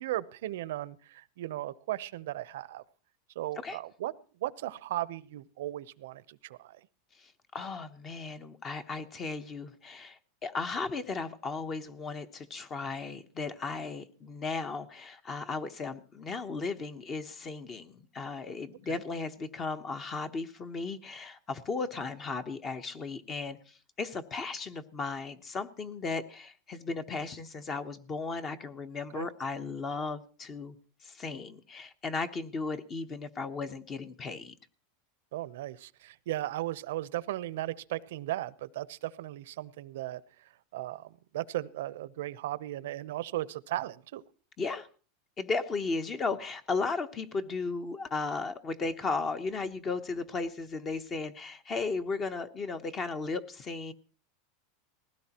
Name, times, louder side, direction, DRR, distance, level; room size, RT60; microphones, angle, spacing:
voice 1, 0.0-2.8 3.3-4.1 4.4-6.8 18.9-19.0 29.1-29.3 35.3-44.2, right 15 dB, 75° right, 0.7 m, -36 dB
voice 2, 7.2-30.7 31.0-34.5 44.6-44.9 45.4-53.9, left 4 dB, 25° left, 1.0 m, -35 dB
19.5 x 16.0 x 3.0 m
supercardioid pair, 150°, 0 cm